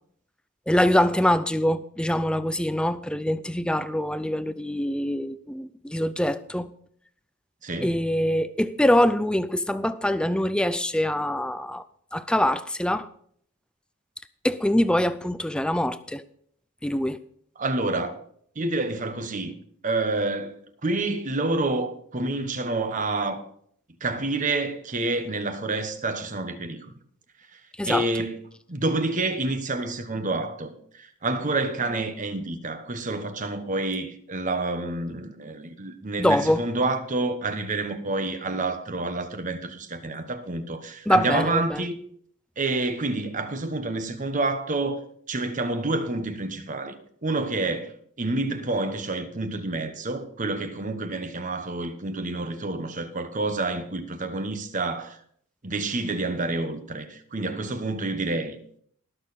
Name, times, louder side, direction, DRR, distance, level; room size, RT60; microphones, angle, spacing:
voice 1, 0.7-6.7 7.8-11.8 12.1-13.1 14.4-16.2 16.8-17.2 27.8-28.1 36.2-36.6 41.1-41.9, left 1 dB, 5° left, 0.4 m, -24 dB
voice 2, 7.6-7.9 17.6-18.1 18.6-19.5 19.8-20.6 20.8-23.4 24.0-26.9 27.9-28.4 28.7-42.0 42.6-45.0 45.3-47.9 48.2-55.2 55.6-58.6, right 2 dB, 35° right, 1.1 m, -28 dB
19.0 x 6.7 x 4.1 m
head